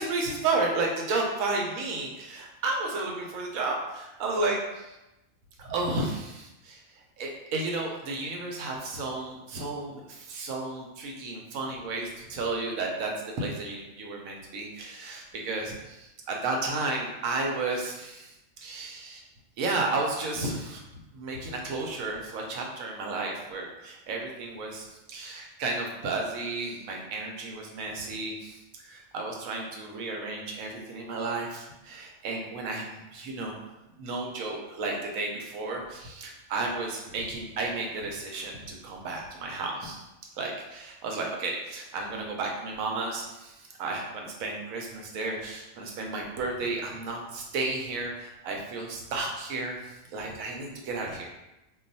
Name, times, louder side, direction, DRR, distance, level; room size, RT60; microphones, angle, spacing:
voice 1, 0.0-5.0 5.6-18.3 18.6-19.2 19.6-20.8 21.1-33.6 33.9-40.0 40.4-51.2, right 3 dB, 85° right, 0 dB, 1.1 m, -33 dB
2.3 x 2.3 x 3.9 m, 0.96 s
omnidirectional pair, 1.4 m